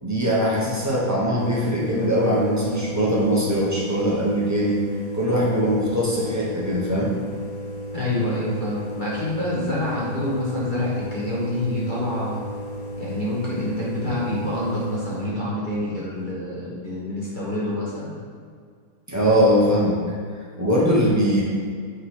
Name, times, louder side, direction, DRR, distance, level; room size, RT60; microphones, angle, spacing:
voice 1, 0.0-4.8 5.1-7.1 19.1-20.0 20.6-21.4, equal, 15° right, -6 dB, 0.6 m, -21 dB
sound 1, 1.4-15.3, right 1 dB, 45° left, 1.7 m, -34 dB
voice 2, 7.9-12.4 13.0-18.2, left 1 dB, 30° left, -7 dB, 1.2 m, -27 dB
6.5 x 3.9 x 4.7 m, 2.1 s
omnidirectional pair, 2.2 m